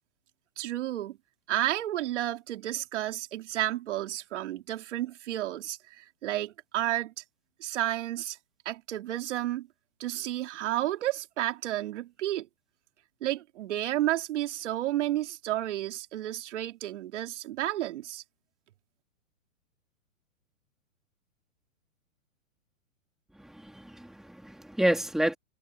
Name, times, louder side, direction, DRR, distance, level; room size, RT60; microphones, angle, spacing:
voice 1, 0.6-1.2 1.5-7.2 7.6-8.4 8.7-9.7 10.0-12.5 13.2-18.2, right 14 dB, 55° right, 3.5 m, -31 dB
voice 2, 23.4-25.3, right 1 dB, ahead, 3.3 m, -29 dB
hypercardioid pair, 135°, 41 cm